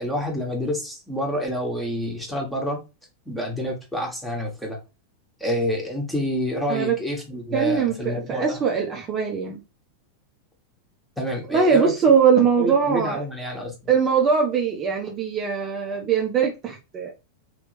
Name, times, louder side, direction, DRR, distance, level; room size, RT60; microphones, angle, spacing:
voice 1, 0.0-2.8 3.3-4.8 5.4-8.6 11.2-11.9 12.6-13.7, equal, ahead, 1.4 m, -28 dB
voice 2, 7.5-9.6 11.5-13.2 13.9-17.1, right 6 dB, 30° right, 0.8 m, -21 dB
3.9 x 3.1 x 3.3 m
figure-of-eight pair, 90°, 0 cm